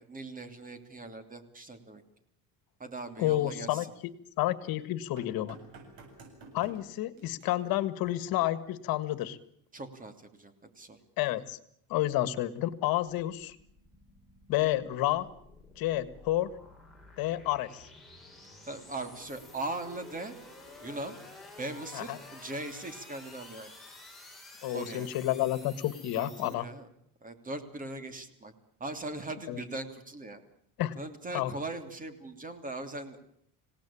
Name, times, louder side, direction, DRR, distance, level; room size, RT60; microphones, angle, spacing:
voice 1, 0.0-2.0 2.8-3.9 9.7-10.1 10.4-11.0 18.6-20.3 20.8-21.2 21.6-23.7 24.7-25.2 26.2-26.9 27.2-28.5 28.8-30.4 31.0-33.2, right 2 dB, 20° right, 9 dB, 3.1 m, -40 dB
voice 2, 3.2-5.6 6.5-9.4 11.2-11.6 11.9-13.6 14.5-15.3 15.8-16.5 17.2-17.9 21.9-22.2 24.6-26.7 29.5-29.6 30.8-31.0 31.3-31.5, left 15 dB, 70° left, 15 dB, 1.8 m, -30 dB
sound 1, 5.2-6.8 7.2-7.5 9.1-9.2, right 3 dB, 65° right, 7.8 m, -50 dB
sound 2, 13.1-26.5, left 2 dB, ahead, 7.1 m, -52 dB
27.0 x 18.0 x 8.7 m, 0.71 s
cardioid pair, 125°, 37 cm